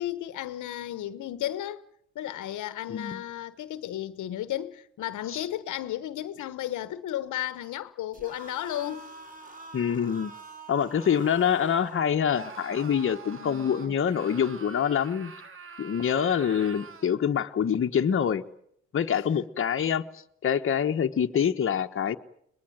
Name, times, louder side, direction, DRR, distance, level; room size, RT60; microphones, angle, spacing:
voice 1, 0.0-1.8 2.1-9.1 13.4-14.0, left 12 dB, 80° left, 1.1 m, -34 dB
voice 2, 2.9-3.2 5.3-5.5 9.7-10.3 10.7-15.3 15.8-18.4 18.9-22.2, left 8 dB, 45° left, 1.3 m, -26 dB
sound 1, 8.1-12.1, right 2 dB, 25° right, 4.0 m, -45 dB
Screaming, 12.3-17.2, right 5 dB, 45° right, 2.1 m, -44 dB
22.5 x 20.5 x 9.3 m
cardioid pair, 90°, 30 cm